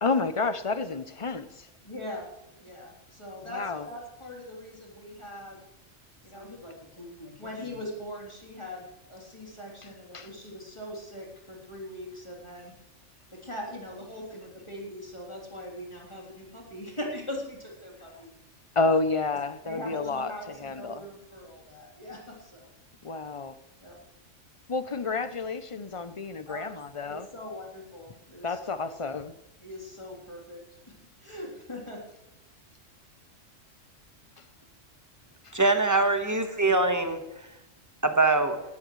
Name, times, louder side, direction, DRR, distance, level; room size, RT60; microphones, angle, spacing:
voice 1, 0.0-1.7 3.5-3.9 10.1-10.3 18.8-21.0 23.0-23.5 24.7-27.3 28.4-29.3 35.4-35.5, left 3 dB, 40° left, 0.5 m, -30 dB
voice 2, 1.8-2.3 2.6-5.6 6.2-12.7 13.3-18.3 19.6-22.7 23.8-24.0 26.5-26.7 27.0-28.7 29.6-30.9 31.2-32.0 36.7-36.9, left 1 dB, 20° left, 3.5 m, -41 dB
voice 3, 35.5-37.2 38.0-38.6, right 3 dB, 15° right, 1.3 m, -23 dB
18.0 x 14.0 x 3.2 m
omnidirectional pair, 1.3 m